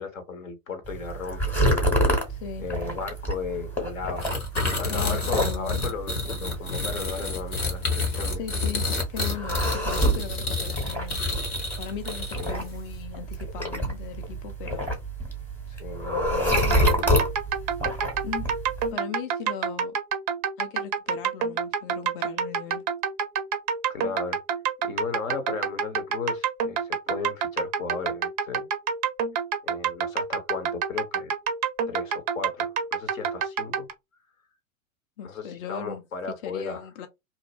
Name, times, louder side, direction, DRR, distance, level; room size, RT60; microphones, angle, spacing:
voice 1, 0.0-1.5 2.6-4.4 4.8-8.4 12.4-12.6 15.7-17.1 23.9-24.4 24.8-28.7 29.6-31.3 31.9-33.9 35.2-36.9, left 5 dB, 70° left, 0.9 m, -35 dB
sound 1, 0.8-18.9, equal, 5° left, 0.8 m, -28 dB
voice 2, 2.3-2.7 4.8-5.8 8.4-11.4 11.8-14.9 16.5-17.3 18.2-18.5 18.9-20.0 20.6-22.8 35.2-36.0 36.4-37.1, left 8 dB, 40° left, 0.4 m, -38 dB
sound 2, 4.2-12.7, left 3 dB, 85° left, 1.2 m, -29 dB
sound 3, 16.5-33.9, right 7 dB, 30° right, 0.4 m, -28 dB
2.6 x 2.0 x 3.2 m
figure-of-eight pair, 90°, 42 cm